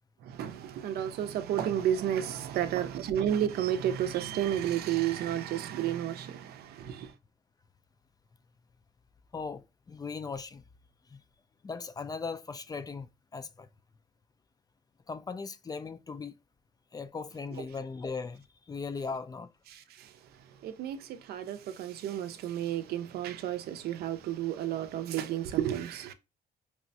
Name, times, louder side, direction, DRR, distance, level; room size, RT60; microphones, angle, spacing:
voice 1, 0.2-7.1 17.6-17.7 19.7-26.1, right 10 dB, 85° right, 0.5 m, -32 dB
voice 2, 9.3-10.6 11.1-11.2 11.6-13.7 15.1-16.4 16.9-19.5, left 4 dB, 25° left, 0.3 m, -38 dB
4.7 x 2.1 x 2.6 m
cardioid pair, 90°, 16 cm